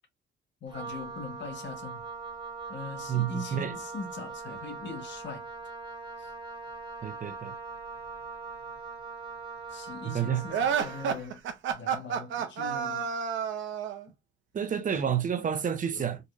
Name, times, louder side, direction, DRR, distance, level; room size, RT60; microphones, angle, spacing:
voice 1, 0.6-2.0 2.7-5.4 6.2-6.3 9.7-11.4 11.7-13.1 15.0-15.2 15.9-16.2, left 4 dB, 65° left, 1.4 m, -41 dB
Wind instrument woodwind instrument, 0.7-11.3, right 4 dB, 25° right, 1.9 m, -41 dB
voice 2, 3.1-3.7 7.0-7.5 10.0-10.4 14.5-16.2, right 9 dB, 40° right, 0.7 m, -29 dB
sound 1, 10.5-14.0, right 7 dB, 75° right, 0.8 m, -30 dB
3.9 x 2.8 x 2.5 m
cardioid pair, 90°, 20 cm